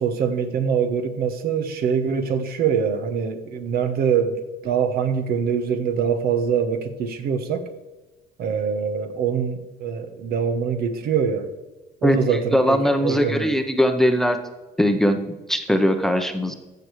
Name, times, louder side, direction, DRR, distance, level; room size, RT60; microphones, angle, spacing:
voice 1, 0.0-7.7 8.4-11.5 12.0-13.5, right 6 dB, 65° right, 8 dB, 1.1 m, -24 dB
voice 2, 12.5-14.4 14.8-16.5, equal, ahead, 7 dB, 0.8 m, -20 dB
14.5 x 6.8 x 3.2 m, 1.1 s
cardioid pair, 110°, 17 cm